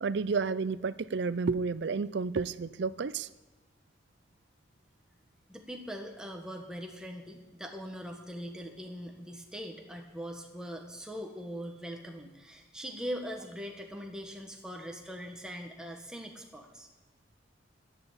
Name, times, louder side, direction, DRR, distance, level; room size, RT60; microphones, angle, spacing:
voice 1, 0.0-3.3, right 4 dB, 65° right, 17 dB, 0.5 m, -31 dB
voice 2, 5.5-16.9, equal, 5° right, 2 dB, 1.5 m, -41 dB
11.0 x 11.0 x 8.1 m, 1.1 s
head